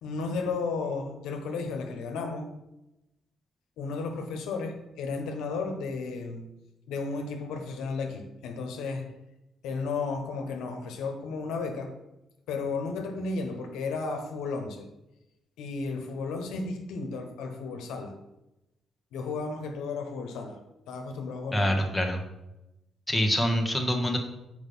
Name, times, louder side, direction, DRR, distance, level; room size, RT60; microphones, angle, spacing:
voice 1, 0.0-2.5 3.8-6.5 6.9-9.1 9.6-11.9 12.5-14.9 15.6-18.2 19.1-20.6 20.9-21.8, left 4 dB, 90° left, 4 dB, 1.1 m, -33 dB
voice 2, 21.5-22.2 23.1-24.2, equal, 5° left, 2 dB, 1.3 m, -25 dB
6.3 x 5.0 x 5.5 m, 0.93 s
cardioid pair, 90°, 0 cm